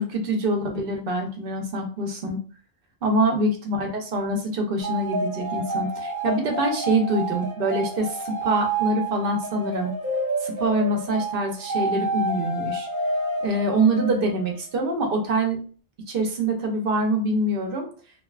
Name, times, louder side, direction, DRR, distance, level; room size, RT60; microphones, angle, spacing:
voice 1, 0.0-2.4 3.0-9.9 10.4-12.9 13.4-15.6 16.1-17.9, right 1 dB, 60° right, 3 dB, 0.8 m, -25 dB
sound 1, 4.8-14.6, right 2 dB, 25° right, 0.4 m, -29 dB
2.7 x 2.2 x 2.3 m, 0.39 s
omnidirectional pair, 1.2 m